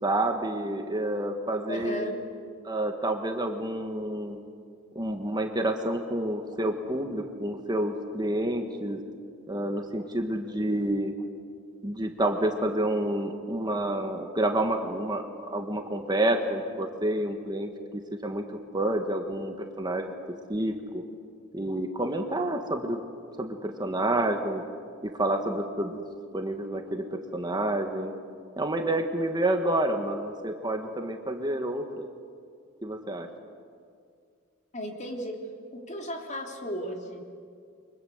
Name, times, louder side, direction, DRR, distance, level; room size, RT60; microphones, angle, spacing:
voice 1, 0.0-2.1 2.6-4.4 4.9-9.0 9.5-11.1 11.8-18.4 18.7-20.1 20.5-21.0 21.5-23.0 23.4-24.6 25.0-26.0 26.3-28.1 28.6-32.1 32.8-33.3, right 1 dB, 20° right, 4 dB, 1.6 m, -29 dB
voice 2, 1.7-2.2 34.7-35.4 35.7-37.2, equal, 35° left, 1 dB, 3.5 m, -35 dB
29.5 x 24.0 x 8.1 m, 2.2 s
head